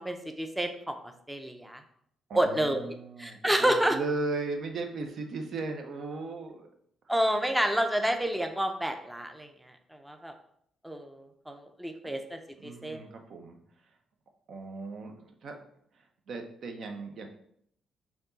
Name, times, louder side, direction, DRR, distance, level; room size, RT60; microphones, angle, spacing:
voice 1, 0.0-1.8 2.3-2.8 3.2-4.0 7.1-10.3 10.8-13.0, right 1 dB, 5° right, 6 dB, 0.5 m, -29 dB
voice 2, 2.3-6.7 12.0-12.1 12.6-13.6 14.5-15.6 15.9-17.3, right 3 dB, 60° right, 4 dB, 0.7 m, -37 dB
4.3 x 2.9 x 3.9 m, 0.69 s
cardioid pair, 90°, 0 cm